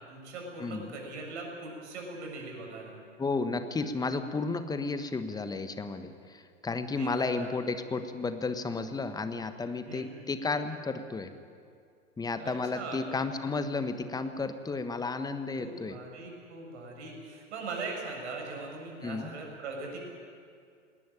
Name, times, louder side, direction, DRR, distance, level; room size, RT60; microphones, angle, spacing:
voice 1, 0.1-3.0 7.0-7.5 9.9-10.1 12.4-13.0 15.6-20.0, right 3 dB, 60° right, 1 dB, 7.0 m, -40 dB
voice 2, 0.6-1.0 3.2-11.3 12.2-16.0 19.0-19.3, left 3 dB, 10° left, 10 dB, 1.3 m, -33 dB
20.0 x 19.0 x 9.0 m, 2.2 s
figure-of-eight pair, 100°, 38 cm